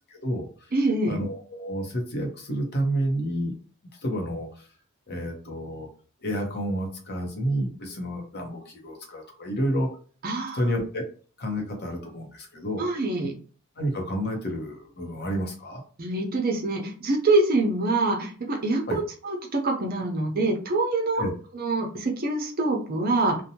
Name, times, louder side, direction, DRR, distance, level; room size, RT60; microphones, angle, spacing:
voice 1, 0.1-0.5 1.1-3.5 4.0-4.6 5.1-5.9 6.2-9.9 10.5-11.0 11.4-12.9 13.8-15.8 18.9-19.0 21.2-21.3, equal, 50° left, 2 dB, 0.7 m, -30 dB
voice 2, 0.7-1.2 10.2-10.6 12.8-13.3 16.0-21.2 21.5-23.4, right 2 dB, 45° right, 1 dB, 0.6 m, -25 dB
2.7 x 2.1 x 2.8 m, 0.40 s
head